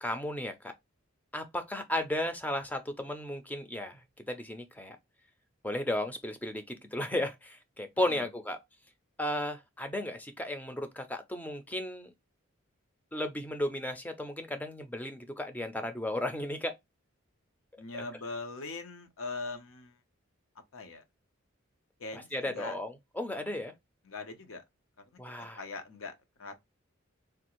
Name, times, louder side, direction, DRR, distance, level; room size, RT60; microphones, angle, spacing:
voice 1, 0.0-0.7 1.3-5.0 5.6-8.6 9.2-12.1 13.1-16.8 22.1-23.7 25.2-25.6, left 1 dB, 10° left, 0.4 m, -34 dB
voice 2, 17.8-20.0 20.7-21.0 22.0-22.8 24.0-24.6 25.6-26.1 26.4-26.5, left 3 dB, 75° left, 0.7 m, -41 dB
3.4 x 2.4 x 2.9 m
head